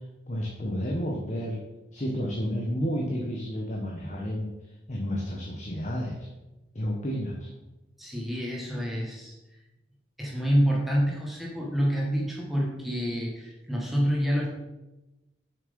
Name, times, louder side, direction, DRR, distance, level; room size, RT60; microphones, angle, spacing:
voice 1, 0.3-1.6 1.9-4.5 4.9-6.3 6.7-7.5, equal, 40° left, -1 dB, 1.1 m, -31 dB
voice 2, 8.0-9.3 10.2-14.5, equal, ahead, -4 dB, 1.6 m, -27 dB
7.5 x 6.3 x 5.3 m, 1.0 s
head